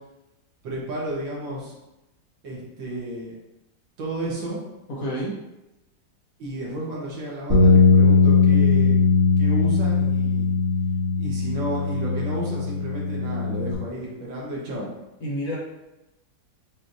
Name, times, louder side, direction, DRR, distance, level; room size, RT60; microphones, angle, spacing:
voice 1, 0.6-1.7 2.4-3.3 4.0-4.6 6.4-9.0 9.4-10.5 11.2-14.9, right 1 dB, 85° right, -4 dB, 1.9 m, -32 dB
voice 2, 4.9-5.4 15.2-15.6, equal, 55° left, -5 dB, 1.3 m, -29 dB
sound 1, 7.5-13.7, left 4 dB, 30° right, 1.2 m, -19 dB
6.4 x 2.8 x 2.6 m, 0.95 s
omnidirectional pair, 2.0 m